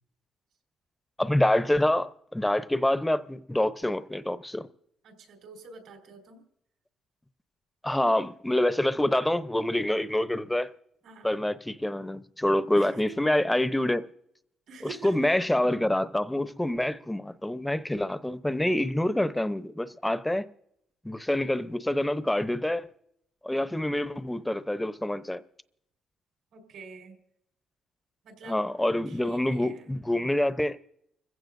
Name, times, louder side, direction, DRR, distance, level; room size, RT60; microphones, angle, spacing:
voice 1, 1.2-4.7 7.8-10.7 11.2-14.1 14.8-20.4 21.0-22.9 23.4-25.4 28.5-30.8, left 1 dB, 10° left, 0.8 m, -26 dB
voice 2, 5.0-6.4 11.0-11.3 12.8-13.4 14.7-15.3 23.6-24.1 26.5-27.2 28.2-28.6 29.1-29.9, right 4 dB, 80° right, 4.6 m, -47 dB
30.0 x 16.0 x 2.7 m
cardioid pair, 90°, 0 cm